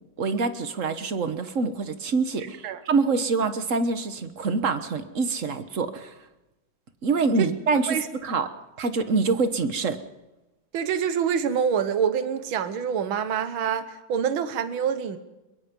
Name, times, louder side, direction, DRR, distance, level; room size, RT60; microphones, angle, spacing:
voice 1, 0.2-6.2 7.0-8.5 8.8-10.0, right 4 dB, 45° right, 10 dB, 1.5 m, -25 dB
voice 2, 10.7-15.2, right 7 dB, 80° right, 11 dB, 1.9 m, -26 dB
22.5 x 21.5 x 5.4 m, 1.0 s
omnidirectional pair, 2.2 m